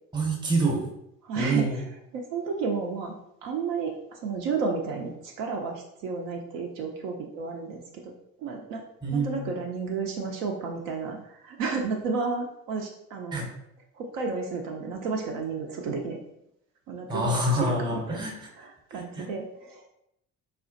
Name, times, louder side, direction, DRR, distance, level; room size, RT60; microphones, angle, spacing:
voice 1, 0.1-0.8 1.4-1.8 9.0-9.5 13.3-13.5 17.1-18.5 18.9-19.3, right 2 dB, 10° right, 0 dB, 0.8 m, -27 dB
voice 2, 1.2-1.6 2.1-3.1 3.4-8.1 8.4-8.8 9.1-13.4 14.0-16.2 16.9-18.2 18.6-19.8, right 4 dB, 55° right, 1 dB, 0.6 m, -32 dB
4.1 x 2.4 x 2.5 m, 0.79 s
figure-of-eight pair, 55°, 47 cm